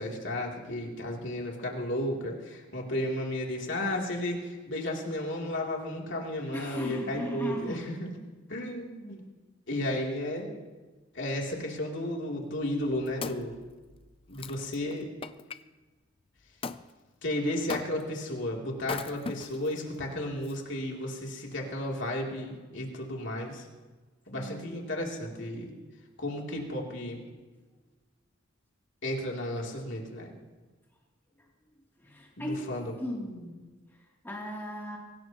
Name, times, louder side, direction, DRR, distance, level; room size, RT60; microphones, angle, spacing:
voice 1, 0.0-8.2 8.5-9.2 9.7-10.5 11.1-13.6 14.3-15.1 17.2-23.6 24.3-25.7 26.2-27.2 29.0-30.3 32.4-32.9, left 1 dB, 65° left, -1 dB, 3.2 m, -33 dB
voice 2, 6.5-7.8 24.3-24.7 32.1-32.7 33.0-33.6 34.2-35.0, left 1 dB, 10° left, -4 dB, 3.0 m, -36 dB
Wood, 12.7-15.6 16.6-16.8 17.7-18.2 18.8-19.8 20.4-20.5, left 4 dB, 30° left, 0.5 m, -39 dB
23.5 x 18.0 x 3.1 m, 1.3 s
head